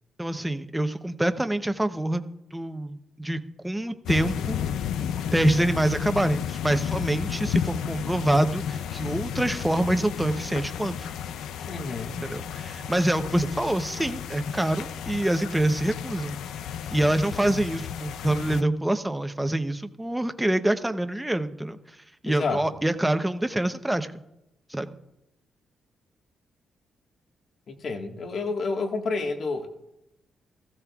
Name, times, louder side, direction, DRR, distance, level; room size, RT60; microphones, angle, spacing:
voice 1, 0.2-2.2 2.5-4.6 5.3-11.1 12.2-16.4 16.9-21.8 22.2-24.1 24.7-24.9, right 1 dB, 5° right, 8 dB, 0.8 m, -26 dB
sound 1, 4.1-18.6, left 8 dB, 90° left, 0.4 m, -32 dB
voice 2, 11.7-12.2 22.2-22.6 27.7-29.7, left 3 dB, 50° left, 3 dB, 1.6 m, -29 dB
18.0 x 15.5 x 2.4 m, 0.86 s
cardioid pair, 115°, 0 cm